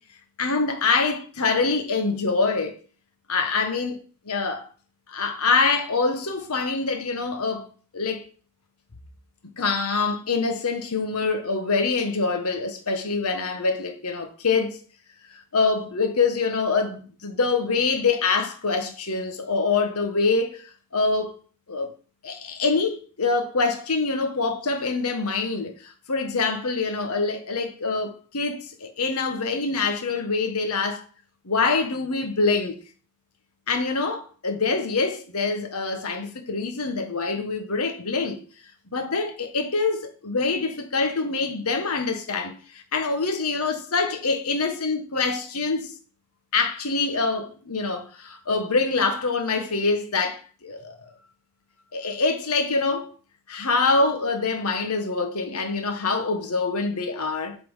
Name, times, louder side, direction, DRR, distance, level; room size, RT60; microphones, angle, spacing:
voice 1, 0.4-2.8 3.3-4.0 4.2-4.7 5.1-7.7 7.9-8.2 9.6-14.8 15.3-21.3 21.7-21.9 22.2-31.0 31.4-32.8 33.7-38.4 38.9-45.9 46.5-51.1 51.9-53.1 53.5-57.6, left 4 dB, 75° left, 1.3 m, -25 dB
8.1 x 4.3 x 5.5 m
head